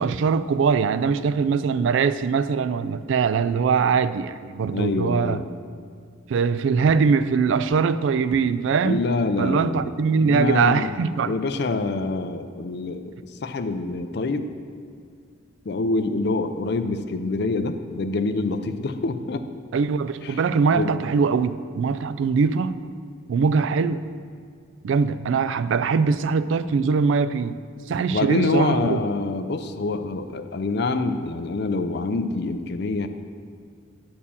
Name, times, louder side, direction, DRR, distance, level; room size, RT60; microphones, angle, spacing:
voice 1, 0.0-5.4 6.3-9.0 9.4-11.4 19.7-22.9 23.3-24.0 24.8-27.6 27.9-29.0, right 5 dB, 70° right, 0.3 m, -22 dB
voice 2, 4.7-5.5 8.8-10.0 10.2-10.9 11.2-13.1 13.4-14.5 15.7-19.4 20.2-20.4 20.7-21.0 28.1-33.1, left 3 dB, 55° left, 0.5 m, -26 dB
8.6 x 4.4 x 7.0 m
head